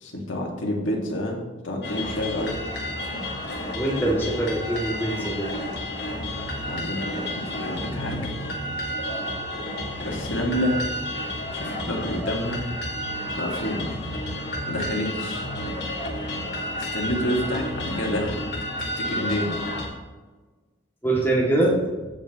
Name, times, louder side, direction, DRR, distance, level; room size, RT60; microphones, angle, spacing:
voice 1, 0.0-2.6 6.7-8.3 10.0-10.8 11.2-12.7 13.4-14.0 14.7-15.5 16.8-18.4 18.8-19.6, left 1 dB, 80° left, 0 dB, 1.9 m, -29 dB
sound 1, 1.8-19.9, equal, 55° left, 1.9 m, -31 dB
voice 2, 3.7-5.5 21.0-21.8, right 2 dB, 10° left, -5 dB, 2.2 m, -23 dB
15.5 x 5.2 x 3.0 m, 1.3 s
head